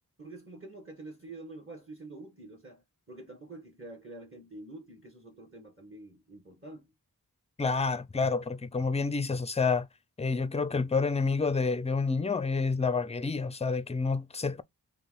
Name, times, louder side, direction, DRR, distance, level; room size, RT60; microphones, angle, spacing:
voice 1, 0.2-6.9, right 2 dB, 35° right, 1.5 m, -47 dB
voice 2, 7.6-9.9 10.2-14.6, left 4 dB, 15° left, 0.4 m, -29 dB
4.0 x 3.1 x 3.9 m
wide cardioid pair, 45°, 37 cm